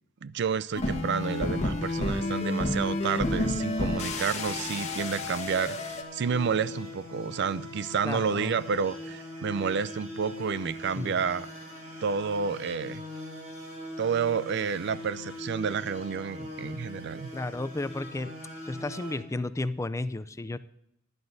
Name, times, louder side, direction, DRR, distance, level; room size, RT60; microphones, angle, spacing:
voice 1, 0.2-11.5 12.0-13.0 14.0-17.3, right 6 dB, 55° right, 17 dB, 0.4 m, -30 dB
sound 1, 0.7-6.0, left 2 dB, 35° left, 1.3 m, -30 dB
sound 2, 3.0-19.2, left 1 dB, 35° right, 5.7 m, -41 dB
voice 2, 8.0-8.5 11.0-11.2 17.3-18.3 18.7-20.6, left 2 dB, 15° left, 13 dB, 0.4 m, -33 dB
19.0 x 11.0 x 2.7 m, 0.76 s
head